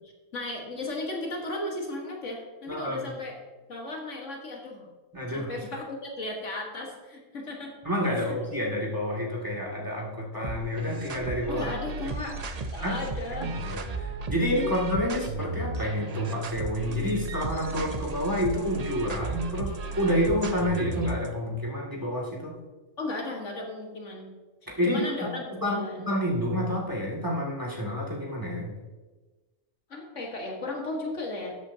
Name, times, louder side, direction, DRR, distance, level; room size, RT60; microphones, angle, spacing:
voice 1, 0.0-3.4 3.7-4.9 5.3-7.8 8.1-8.4 11.5-12.4 12.7-13.6 14.6-14.7 23.0-24.3 24.8-26.1 29.9-31.6, left 2 dB, 65° left, 0 dB, 1.9 m, -35 dB
voice 2, 2.7-3.1 5.1-5.5 7.8-11.7 12.8-13.0 13.4-22.5 24.8-28.7, equal, 15° right, -3 dB, 2.3 m, -29 dB
sound 1, 10.4-21.3, right 3 dB, 40° right, 0.6 m, -35 dB
13.0 x 8.2 x 2.8 m, 1.2 s
omnidirectional pair, 1.4 m